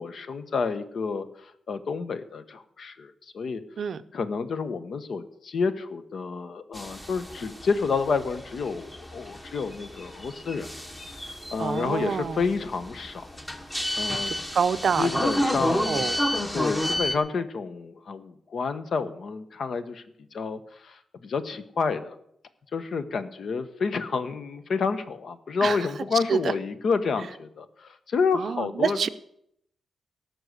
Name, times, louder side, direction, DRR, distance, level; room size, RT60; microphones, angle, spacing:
voice 1, 0.0-3.6 4.1-10.7 11.2-13.3 13.9-14.3 15.0-16.1 16.5-20.0 20.3-22.1 22.7-29.1, left 5 dB, 50° left, 11 dB, 1.0 m, -29 dB
sound 1, 6.7-17.2, equal, 10° left, 1.2 m, -31 dB
voice 2, 11.6-12.5 14.1-15.2 15.6-16.2 25.6-25.9 26.3-26.4 28.3-29.1, right 6 dB, 50° right, 12 dB, 0.6 m, -27 dB
17.5 x 6.3 x 8.1 m, 0.73 s
wide cardioid pair, 165°, 0 cm